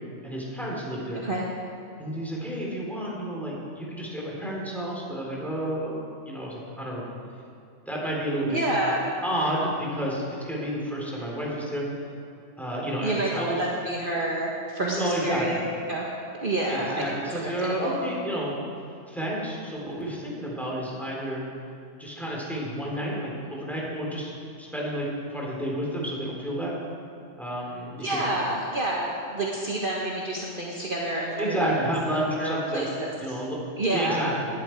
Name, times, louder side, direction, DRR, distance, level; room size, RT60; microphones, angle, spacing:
voice 1, 0.2-1.2 2.0-7.0 7.9-8.6 8.8-8.9 9.2-11.8 12.6-13.6 14.8-15.6 16.7-18.5 19.1-21.4 22.0-24.3 24.6-26.7 27.4-28.5 31.4-32.8 33.2-33.6 33.9-34.5, right 1 dB, ahead, -4 dB, 3.6 m, -30 dB
voice 2, 8.5-9.0 13.0-15.6 15.9-16.1 16.4-17.1 17.3-17.9 28.0-31.7 32.4-33.4 33.8-34.2, right 1 dB, 45° right, -4 dB, 1.6 m, -28 dB
19.0 x 11.5 x 4.6 m, 2.4 s
omnidirectional pair, 1.3 m